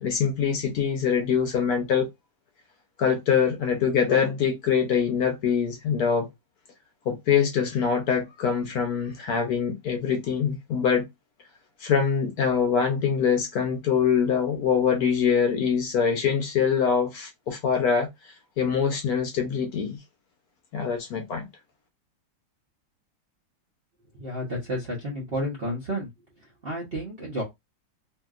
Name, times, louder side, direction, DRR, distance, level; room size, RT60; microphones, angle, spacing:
voice 1, 0.0-2.1 3.0-6.3 7.1-11.1 11.8-18.1 18.6-20.0 20.7-21.5, left 7 dB, 70° left, 1.0 m, -24 dB
voice 2, 24.1-26.1 26.4-27.4, equal, 50° right, 0.7 m, -31 dB
2.8 x 2.7 x 2.3 m
omnidirectional pair, 2.0 m